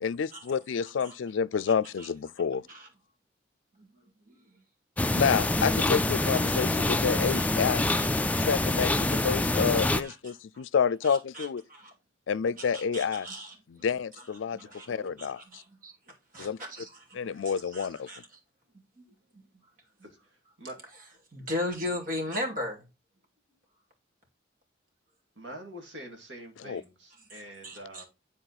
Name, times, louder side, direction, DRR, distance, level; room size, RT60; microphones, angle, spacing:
voice 1, 0.0-2.6 5.1-7.8 8.4-11.6 12.3-13.3 13.7-14.6 14.9-15.4 16.4-16.6 17.1-18.1 26.7-26.8, left 6 dB, 85° left, 0.4 m, -29 dB
voice 2, 0.8-1.1 2.0-2.1 2.7-2.9 3.8-3.9 4.3-4.4 7.3-8.1 9.1-9.2 10.0-10.3 11.0-11.9 12.6-13.5 14.5-14.9 15.2-15.9 16.3-18.2 19.0-19.1 19.3-19.4 21.3-22.8 27.6-28.0, left 1 dB, 45° right, 2.6 m, -38 dB
sound 1, 5.0-10.0, left 2 dB, 10° left, 0.3 m, -26 dB
voice 3, 14.6-15.3 20.0-20.8 25.4-28.0, right 1 dB, 80° right, 2.4 m, -46 dB
10.5 x 4.2 x 4.1 m
head